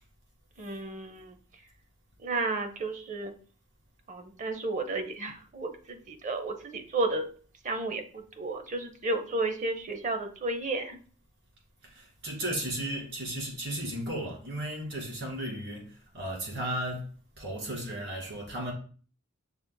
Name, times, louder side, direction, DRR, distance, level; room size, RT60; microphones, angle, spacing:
voice 1, 0.6-1.3 2.2-3.3 4.1-7.3 7.6-11.0, right 2 dB, 35° right, 0.6 m, -32 dB
voice 2, 11.8-18.7, right 1 dB, 55° right, 2.2 m, -35 dB
6.1 x 3.9 x 2.2 m
head